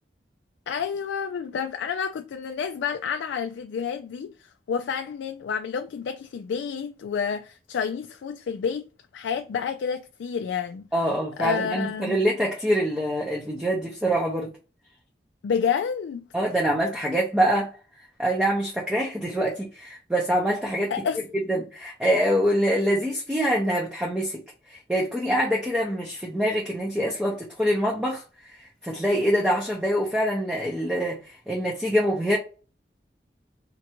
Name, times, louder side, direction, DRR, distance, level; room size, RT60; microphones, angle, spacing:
voice 1, 0.7-8.9 9.1-10.9 11.4-12.2 15.4-16.2 20.9-21.2, left 6 dB, 80° left, 0.3 m, -29 dB
voice 2, 10.9-14.5 16.3-17.7 18.2-20.9 21.3-24.4 24.7-28.2 28.6-32.4, equal, 5° right, 0.6 m, -25 dB
4.3 x 2.6 x 2.8 m
head